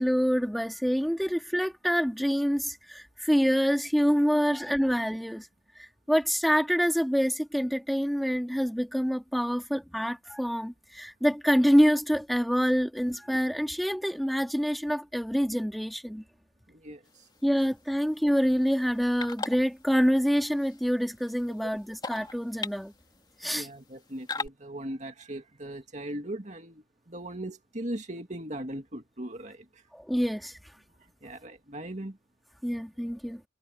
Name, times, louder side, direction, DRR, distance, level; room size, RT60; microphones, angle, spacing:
voice 1, 0.0-5.5 5.8-16.2 17.4-22.9 23.4-23.7 29.9-30.6 32.6-33.4, equal, ahead, 2.9 m, -26 dB
voice 2, 16.7-17.3 23.4-29.8 31.2-32.2, right 1 dB, 40° right, 2.4 m, -39 dB
sound 1, 17.0-24.5, left 3 dB, 25° left, 2.8 m, -42 dB
head